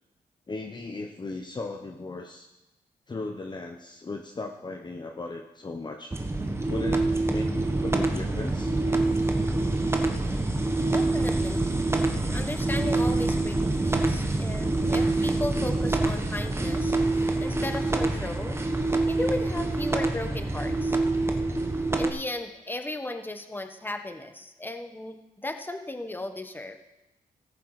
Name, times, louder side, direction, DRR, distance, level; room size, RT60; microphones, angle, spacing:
voice 1, 0.5-2.5 3.1-6.2 6.7-7.5 7.8-8.8, left 3 dB, 30° left, 3 dB, 1.1 m, -36 dB
sound 1, 6.1-22.1, right 2 dB, 15° right, 1.3 m, -26 dB
voice 2, 10.9-11.6 12.3-18.6 19.1-21.0 21.4-21.5 22.0-26.8, left 2 dB, 10° left, 6 dB, 1.3 m, -35 dB
18.0 x 6.8 x 4.9 m, 0.98 s
cardioid pair, 85°, 16 cm